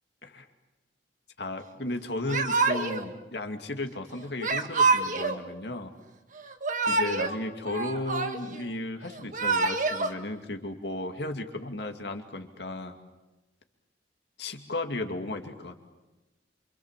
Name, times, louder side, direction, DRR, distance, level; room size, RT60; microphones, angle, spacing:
voice 1, 1.4-5.9 6.9-12.9 14.4-15.8, left 2 dB, 65° left, 5 dB, 2.4 m, -34 dB
Yell / Crying sobbing, 2.3-3.1 4.4-5.4 6.4-7.4 7.7-8.6 9.2-10.1, right 3 dB, 45° right, 1.7 m, -26 dB
27.0 x 26.0 x 7.5 m, 1.1 s
head